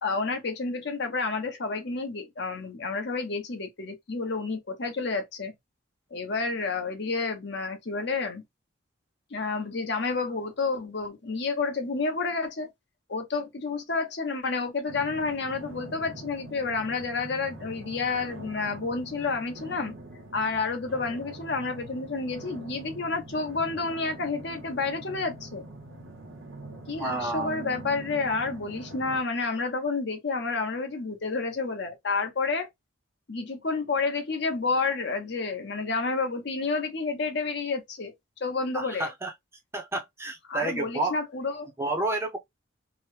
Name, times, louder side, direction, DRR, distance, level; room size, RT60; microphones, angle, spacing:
voice 1, 0.0-5.5 6.1-8.4 9.3-12.7 13.1-19.9 20.3-25.6 26.9-32.7 33.3-38.1 38.4-39.1 40.5-41.7, left 4 dB, 60° left, 0.8 m, -30 dB
sound 1, 14.9-29.2, right 2 dB, 85° right, 0.9 m, -43 dB
voice 2, 27.0-27.5 38.7-39.3 39.7-41.2 41.8-42.4, right 2 dB, 15° right, 0.5 m, -30 dB
2.9 x 2.1 x 3.1 m
head